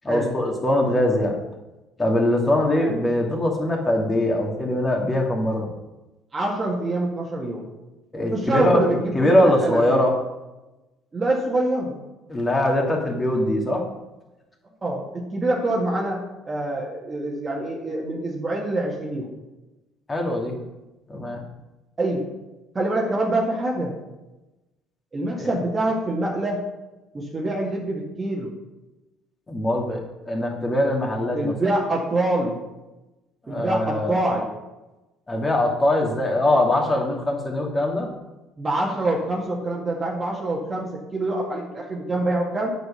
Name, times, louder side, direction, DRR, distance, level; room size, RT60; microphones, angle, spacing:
voice 1, 0.0-1.3 2.0-5.7 8.1-10.1 12.3-13.8 20.1-20.5 21.1-21.4 25.4-25.5 29.5-31.5 33.5-34.2 35.3-38.1, left 1 dB, 25° left, 1 dB, 2.4 m, -22 dB
voice 2, 2.6-3.0 6.3-7.6 8.3-10.1 11.1-12.0 14.8-19.3 22.0-22.2 22.7-23.9 25.1-26.6 27.1-28.5 31.3-32.6 33.5-34.5 38.6-42.7, right 1 dB, 30° right, -3 dB, 1.9 m, -25 dB
9.2 x 5.1 x 6.8 m, 1.0 s
figure-of-eight pair, 55°, 0 cm